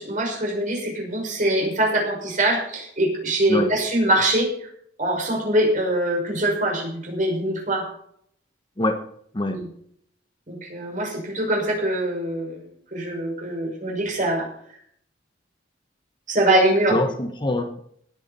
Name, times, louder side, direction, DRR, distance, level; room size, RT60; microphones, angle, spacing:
voice 1, 0.0-4.5 5.0-7.9 9.5-9.7 10.5-14.5 16.3-17.0, right 1 dB, 45° right, 0 dB, 5.9 m, -23 dB
voice 2, 16.9-17.8, left 2 dB, 25° left, 6 dB, 1.0 m, -24 dB
18.5 x 9.4 x 4.3 m, 0.67 s
head